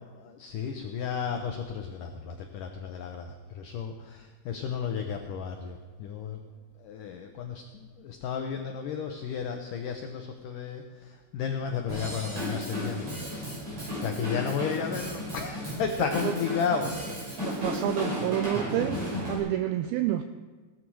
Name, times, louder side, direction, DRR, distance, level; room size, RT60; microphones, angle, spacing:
voice 1, 0.1-6.4 6.8-16.9 17.2-17.4, left 6 dB, 85° left, 5 dB, 1.8 m, -33 dB
Drum kit / Drum, 11.9-19.4, equal, 40° right, 6.9 m, -34 dB
voice 2, 17.4-19.0 19.3-20.2, right 12 dB, 90° right, 9 dB, 2.1 m, -28 dB
17.0 x 12.5 x 4.7 m, 1.4 s
omnidirectional pair, 4.9 m